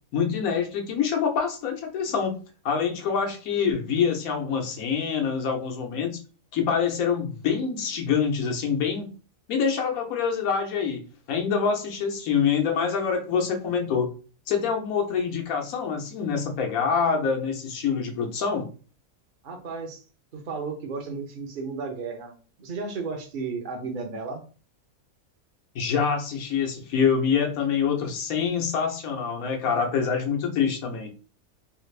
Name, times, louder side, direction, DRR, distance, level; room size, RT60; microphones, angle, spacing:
voice 1, 0.1-2.4 2.6-6.2 6.5-9.1 9.5-11.0 11.3-14.1 14.5-18.7 25.7-31.1, left 6 dB, 85° left, 3 dB, 1.2 m, -25 dB
voice 2, 19.4-20.0 20.3-22.3 22.6-24.4, right 4 dB, 50° right, 1 dB, 0.7 m, -33 dB
3.4 x 2.4 x 3.2 m, 0.36 s
omnidirectional pair, 1.4 m